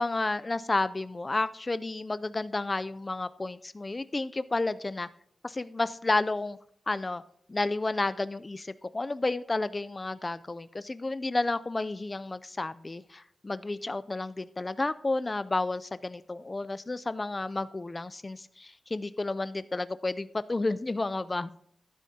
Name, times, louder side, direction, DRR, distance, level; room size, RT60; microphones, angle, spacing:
voice 1, 0.0-5.1 5.4-6.6 6.9-7.2 7.5-21.6, left 2 dB, 25° left, 14 dB, 0.3 m, -31 dB
13.0 x 12.0 x 2.8 m, 0.68 s
wide cardioid pair, 145°, 0 cm